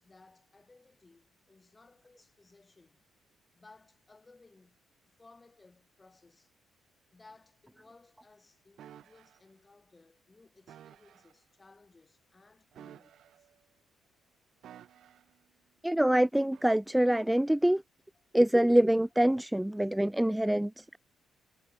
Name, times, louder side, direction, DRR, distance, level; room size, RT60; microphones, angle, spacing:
voice 1, 0.0-3.0 3.5-6.5 7.1-13.5 18.1-18.4, left 3 dB, 25° left, 7.9 m, -60 dB
sound 1, 8.8-9.4 10.7-11.3 12.7-13.6 14.6-15.4 16.5-16.8, right 11 dB, 70° right, 7.9 m, -53 dB
voice 2, 15.8-17.8 18.3-21.0, right 1 dB, 5° right, 0.4 m, -25 dB
cardioid pair, 90°, 0 cm